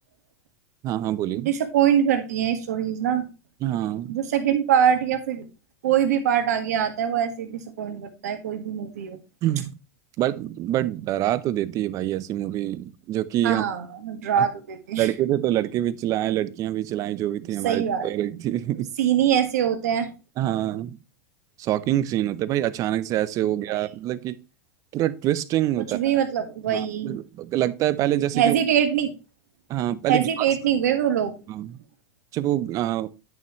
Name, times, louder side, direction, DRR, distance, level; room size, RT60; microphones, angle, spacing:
voice 1, 0.8-1.5 3.6-4.2 9.4-9.8 10.2-13.7 14.4-14.5 15.0-18.9 20.4-21.0 21.6-24.4 24.9-26.0 26.7-28.5 29.7-30.5 31.5-31.7 32.3-33.1, right 13 dB, 40° right, 0.6 m, -25 dB
voice 2, 1.4-3.2 4.1-5.4 5.8-9.2 13.4-15.1 17.6-18.1 19.0-20.1 23.4-23.8 25.8-27.1 28.3-29.1 30.1-31.3, right 9 dB, 80° right, 1.7 m, -23 dB
9.5 x 5.5 x 3.1 m
hypercardioid pair, 115°, 9 cm